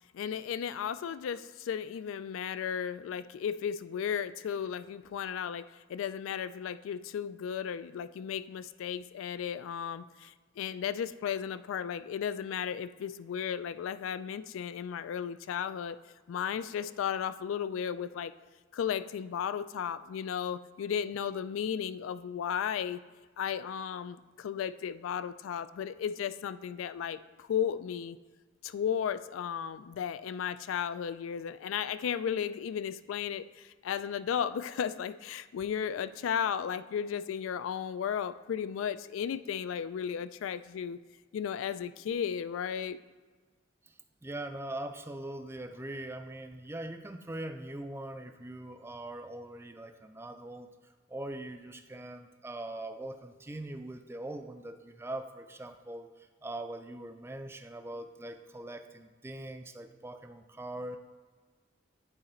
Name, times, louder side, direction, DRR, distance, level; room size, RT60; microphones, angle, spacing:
voice 1, 0.1-16.0 16.3-18.3 18.7-23.0 23.4-28.2 28.6-41.0 41.3-43.0, left 8 dB, 85° left, 14 dB, 0.3 m, -34 dB
voice 2, 43.9-61.0, right 1 dB, 10° right, 7 dB, 0.4 m, -42 dB
8.9 x 4.0 x 4.3 m, 1.4 s
head